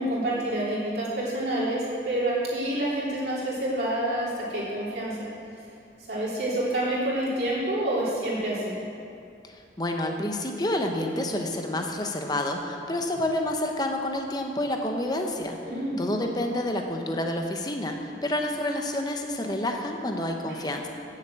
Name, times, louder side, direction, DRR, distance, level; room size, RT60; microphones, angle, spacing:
voice 1, 0.0-5.2 6.0-8.8 15.6-16.0, right 1 dB, 60° right, -7 dB, 3.2 m, -28 dB
voice 2, 9.4-15.6 16.0-20.9, left 1 dB, 20° left, 3 dB, 0.9 m, -29 dB
9.5 x 7.4 x 7.6 m, 2.5 s
head